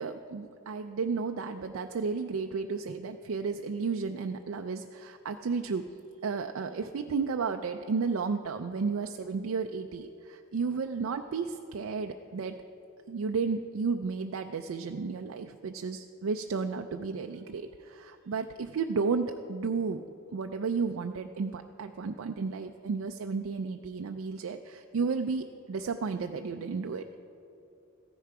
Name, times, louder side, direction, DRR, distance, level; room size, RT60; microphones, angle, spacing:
voice 1, 0.0-5.9 6.2-12.6 13.1-20.0 20.3-27.2, right 5 dB, 85° right, 5 dB, 0.4 m, -33 dB
14.5 x 10.0 x 4.7 m, 2.9 s
head